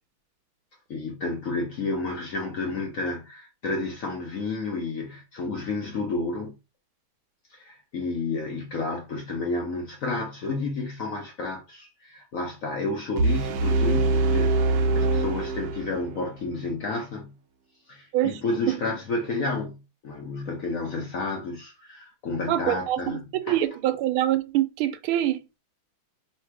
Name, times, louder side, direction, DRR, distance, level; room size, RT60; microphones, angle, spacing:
voice 1, 0.9-6.6 7.5-17.4 17.9-23.6, left 3 dB, 60° left, 0.9 m, -31 dB
sound 1, 13.2-16.2, right 2 dB, 75° right, 0.8 m, -23 dB
voice 2, 22.5-25.4, right 13 dB, 90° right, 1.5 m, -25 dB
3.3 x 2.7 x 4.5 m
omnidirectional pair, 2.2 m